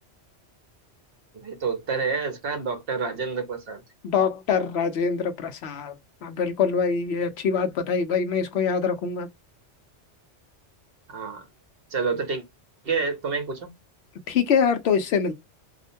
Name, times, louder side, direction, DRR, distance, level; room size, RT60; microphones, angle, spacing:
voice 1, 1.3-3.8 11.1-11.5 11.9-12.4 12.8-13.7, right 5 dB, 60° right, 0.9 m, -28 dB
voice 2, 4.0-6.0 6.2-9.3 14.3-15.3, left 6 dB, 70° left, 0.8 m, -24 dB
2.5 x 2.1 x 2.6 m
omnidirectional pair, 1.2 m